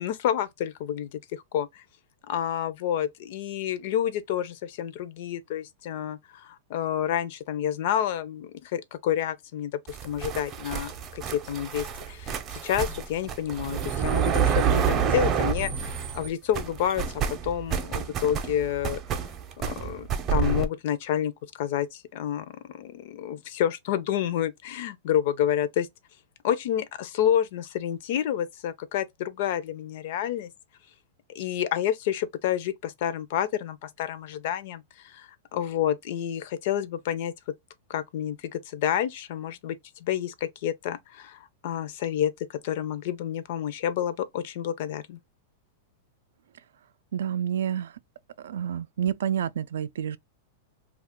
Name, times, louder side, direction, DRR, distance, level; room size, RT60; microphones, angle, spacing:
voice 1, 0.0-1.8 2.3-19.0 19.6-21.3 21.6-25.9 26.4-30.5 31.3-37.3 37.9-39.8 40.0-45.2, left 10 dB, 60° left, 0.5 m, -29 dB
sound 1, 9.9-16.3 16.5-20.7, right 7 dB, 30° right, 0.6 m, -28 dB
voice 2, 47.1-47.9 48.4-50.2, right 9 dB, 80° right, 0.3 m, -29 dB
2.4 x 2.3 x 3.5 m
hypercardioid pair, 135°, 0 cm